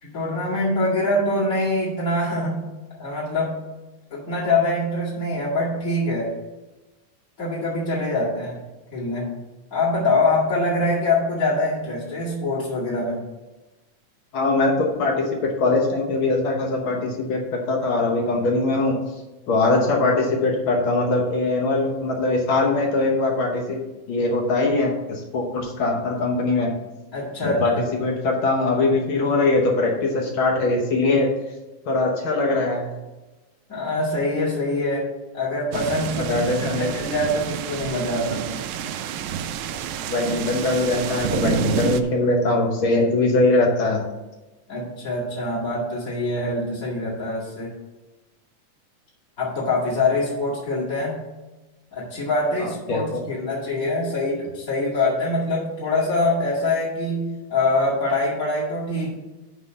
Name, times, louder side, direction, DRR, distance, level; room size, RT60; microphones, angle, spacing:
voice 1, 0.0-2.7 3.0-3.6 4.1-6.3 7.4-8.6 8.9-9.4 9.7-13.2 27.1-27.8 33.7-36.4 36.7-38.5 44.7-47.7 49.4-51.2 51.9-59.1, left 2 dB, 30° left, -9 dB, 2.1 m, -24 dB
voice 2, 14.3-19.0 19.5-23.8 24.1-26.7 27.4-27.7 28.0-31.3 31.9-32.9 36.3-36.9 39.7-39.8 40.1-44.0 52.6-53.2, left 2 dB, 65° left, 1 dB, 1.2 m, -21 dB
sound 1, 35.7-42.0, right 9 dB, 80° right, 1.9 m, -29 dB
6.2 x 5.6 x 6.4 m, 1.1 s
omnidirectional pair, 3.5 m